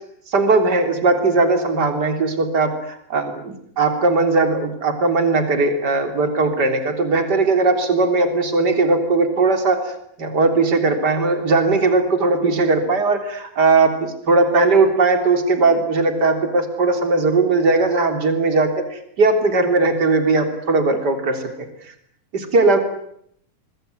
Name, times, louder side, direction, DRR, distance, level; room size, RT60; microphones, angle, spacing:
voice 1, 0.3-21.7 22.3-22.8, right 3 dB, 30° right, 7 dB, 3.9 m, -18 dB
25.0 x 22.0 x 9.5 m, 0.70 s
omnidirectional pair, 3.8 m